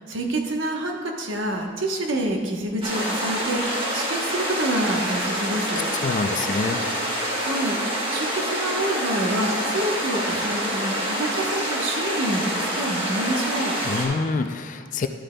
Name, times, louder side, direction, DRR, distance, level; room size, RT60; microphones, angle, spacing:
voice 1, 0.0-6.0 7.1-13.8, right 1 dB, 75° right, 1 dB, 1.0 m, -27 dB
sound 1, 2.8-14.1, equal, 25° right, 1.5 m, -27 dB
voice 2, 6.0-6.8 13.8-15.1, left 4 dB, 40° left, 8 dB, 0.4 m, -26 dB
11.5 x 8.7 x 2.2 m, 2.1 s
head